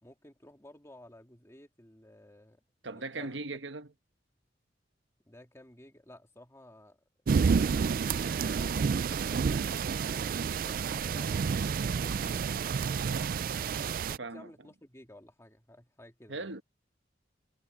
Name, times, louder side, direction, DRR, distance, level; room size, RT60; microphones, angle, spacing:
voice 1, 0.0-3.4 5.3-7.0 7.7-12.4 13.6-16.5, left 1 dB, 15° left, 2.0 m, -55 dB
voice 2, 2.8-3.9 13.0-13.4 14.2-14.5 16.3-16.6, right 3 dB, 85° right, 1.3 m, -39 dB
sound 1, 7.3-14.2, right 5 dB, 50° right, 0.4 m, -29 dB
head